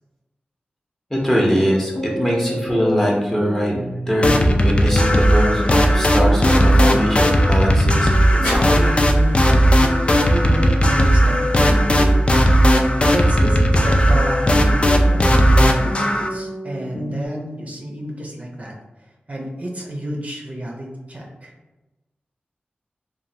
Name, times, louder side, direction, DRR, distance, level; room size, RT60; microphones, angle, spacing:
voice 1, 1.1-3.7 4.1-8.1 8.4-9.1, equal, 10° left, -2 dB, 0.7 m, -22 dB
sound 1, 1.6-17.3, left 1 dB, 80° left, 0.7 m, -29 dB
sound 2, 4.2-16.3, equal, 30° left, 0.3 m, -16 dB
sound 3, 6.7-11.4 12.2-12.3, left 1 dB, 55° left, 0.9 m, -34 dB
voice 2, 10.3-12.1 13.0-18.7 19.3-21.5, equal, 40° right, -1 dB, 0.5 m, -30 dB
3.0 x 2.2 x 2.7 m, 1.1 s
wide cardioid pair, 70°, 4 cm